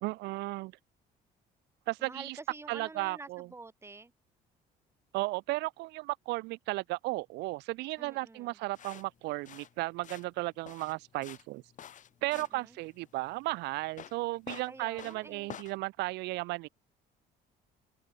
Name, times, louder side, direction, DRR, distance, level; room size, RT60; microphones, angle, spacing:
voice 1, 0.0-0.7 1.9-2.4 2.7-3.5 5.1-11.6 12.2-16.7, right 21 dB, 85° right, 0.5 m, -35 dB
voice 2, 2.0-4.1 8.0-8.6 12.3-12.7 14.7-15.5, right 3 dB, 15° right, 1.3 m, -48 dB
sound 1, 8.7-15.8, left 9 dB, 50° left, 1.7 m, -49 dB
open air
cardioid pair, 110°, 17 cm